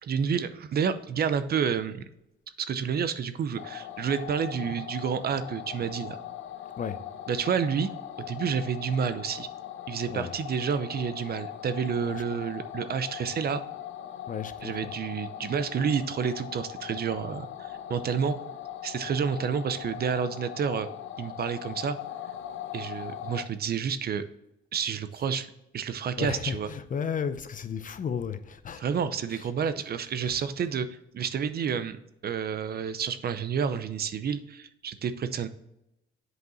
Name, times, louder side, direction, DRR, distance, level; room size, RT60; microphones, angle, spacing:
voice 1, 0.0-2.0 2.6-6.2 7.3-7.9 8.2-9.5 9.9-13.6 14.6-18.4 18.8-20.9 21.2-22.0 22.7-24.2 24.7-25.5 25.7-26.7 28.8-35.5, right 7 dB, 50° right, 0.7 m, -29 dB
sound 1, 3.6-23.5, left 11 dB, 75° left, 0.6 m, -40 dB
voice 2, 12.0-12.4 14.3-14.9 26.2-28.8 29.3-29.7 30.2-30.4, left 7 dB, 40° left, 0.6 m, -34 dB
7.9 x 5.2 x 4.0 m
cardioid pair, 90°, 20 cm